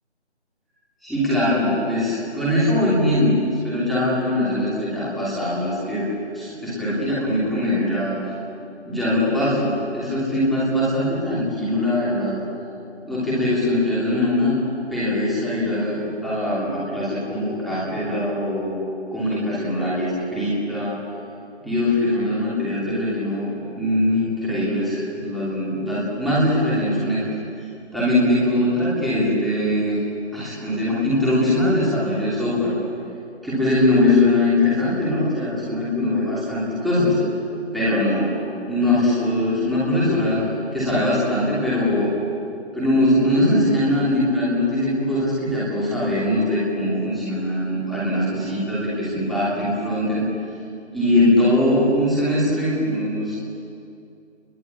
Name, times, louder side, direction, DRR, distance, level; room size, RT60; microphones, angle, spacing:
voice 1, 1.0-3.3 3.6-6.1 6.3-8.1 8.8-12.4 13.0-14.5 14.9-18.7 19.1-20.9 21.6-27.3 27.6-27.7 27.9-30.0 30.3-32.7 33.4-37.2 37.7-38.3 38.7-40.4 40.7-42.1 42.7-50.2 50.9-53.4, left 1 dB, ahead, -9 dB, 3.0 m, -21 dB
30.0 x 22.0 x 8.5 m, 2.5 s
figure-of-eight pair, 165°, 34 cm